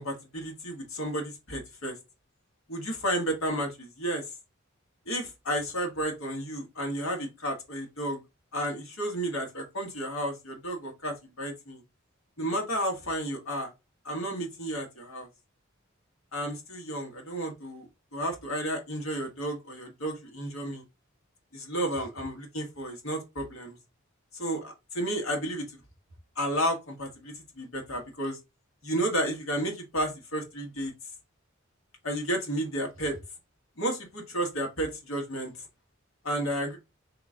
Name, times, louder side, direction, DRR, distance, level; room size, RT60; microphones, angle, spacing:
voice 1, 0.0-2.0 2.7-4.2 5.0-8.2 8.5-11.8 12.4-13.7 14.0-15.3 16.3-20.8 21.5-23.8 24.3-25.8 26.3-28.4 28.8-30.9 32.0-33.2 33.8-35.5 36.2-36.8, right 1 dB, 90° left, 1.5 m, -32 dB
3.9 x 2.9 x 3.7 m
head